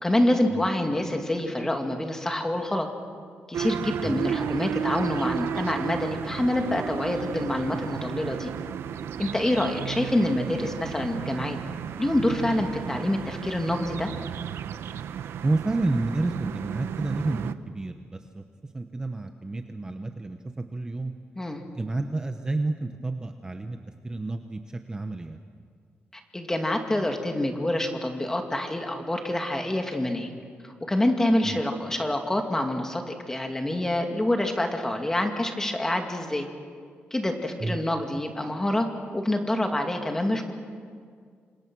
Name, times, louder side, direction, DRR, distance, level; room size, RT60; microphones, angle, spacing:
voice 1, 0.0-2.9 3.5-8.5 9.2-11.6 12.0-14.1 21.4-21.6 26.3-30.3 30.6-36.5 37.1-38.9 39.1-40.5, left 1 dB, 15° left, 4 dB, 2.4 m, -26 dB
sound 1, 3.5-17.5, right 8 dB, 85° right, 0.8 m, -33 dB
voice 2, 15.4-21.1 21.7-23.8 24.0-25.4 31.4-31.6 37.6-37.8, right 2 dB, 20° right, 6 dB, 1.0 m, -30 dB
28.0 x 26.0 x 6.3 m, 2.1 s
wide cardioid pair, 140°, 4 cm